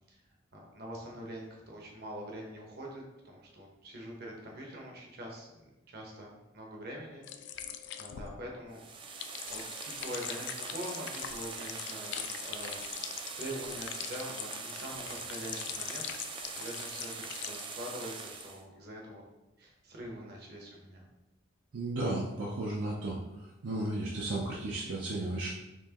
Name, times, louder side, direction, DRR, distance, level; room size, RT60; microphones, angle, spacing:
voice 1, 0.5-7.6 8.0-9.2 9.5-19.2 19.6-21.0, equal, 55° right, -1 dB, 0.9 m, -44 dB
sound 1, 7.2-17.7 18.0-18.4, left 9 dB, 65° left, 0.3 m, -42 dB
sound 2, 8.7-18.6, right 5 dB, 25° right, 0.3 m, -43 dB
voice 2, 21.7-23.2 23.6-25.5, right 2 dB, 75° right, -3 dB, 0.5 m, -34 dB
4.4 x 2.9 x 2.9 m, 0.98 s
head